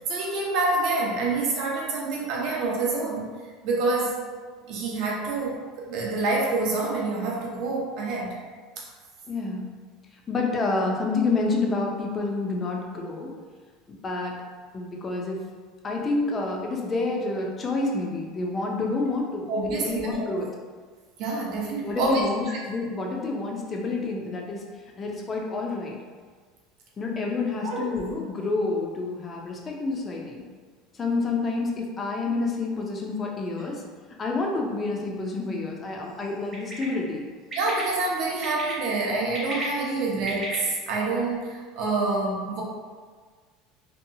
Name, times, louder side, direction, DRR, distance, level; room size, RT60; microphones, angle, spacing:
voice 1, 0.1-3.3 3.6-4.2 4.7-8.4 8.8-8.9 19.5-20.3 21.2-22.6 27.6-27.9 37.5-42.6, right 3 dB, 55° right, -2 dB, 0.6 m, -27 dB
voice 2, 9.3-9.7 10.3-13.3 13.9-14.4 14.7-15.5 15.8-20.5 21.8-24.6 25.0-26.0 27.0-30.4 30.9-33.8 34.2-37.3, left 3 dB, 20° left, 0 dB, 0.4 m, -28 dB
Bird, 36.5-36.8 37.5-37.8 38.4-38.7 39.2-40.5, right 1 dB, 25° right, 0.8 m, -33 dB
2.7 x 2.2 x 2.6 m, 1.5 s
cardioid pair, 155°, 0 cm